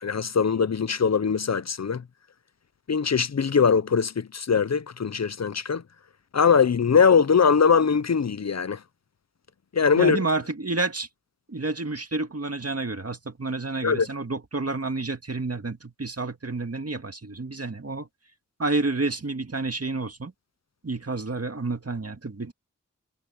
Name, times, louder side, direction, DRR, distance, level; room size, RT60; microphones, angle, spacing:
voice 1, 0.0-2.0 2.9-5.8 6.3-8.8 9.7-10.2 13.8-14.1, left 6 dB, 60° left, 0.6 m, -21 dB
voice 2, 10.0-11.1 11.5-18.1 18.6-20.3 20.8-22.5, right 3 dB, 55° right, 2.0 m, -29 dB
wide cardioid pair, 50°, 30 cm